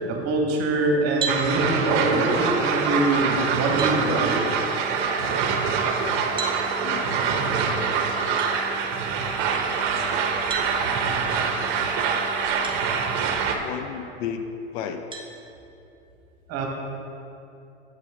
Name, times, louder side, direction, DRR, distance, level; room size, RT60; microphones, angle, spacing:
voice 1, 0.1-4.4 16.5-16.7, right 2 dB, 45° right, 1 dB, 1.6 m, -24 dB
sound 1, 1.2-1.5 3.1-3.2 3.8-4.0 6.4-6.6 8.4-8.5 10.5-10.7 12.6-12.8 13.4-13.5 15.1-15.3, right 5 dB, 15° right, 1.0 m, -31 dB
sound 2, 1.3-13.6, right 5 dB, 60° right, 0.9 m, -25 dB
sound 3, 2.1-13.5, left 1 dB, 20° left, 1.9 m, -43 dB
voice 2, 6.8-7.2 13.6-14.4 14.7-15.1, left 9 dB, 60° left, 7 dB, 0.7 m, -33 dB
8.3 x 5.1 x 5.0 m, 2.8 s
hypercardioid pair, 95°, 34 cm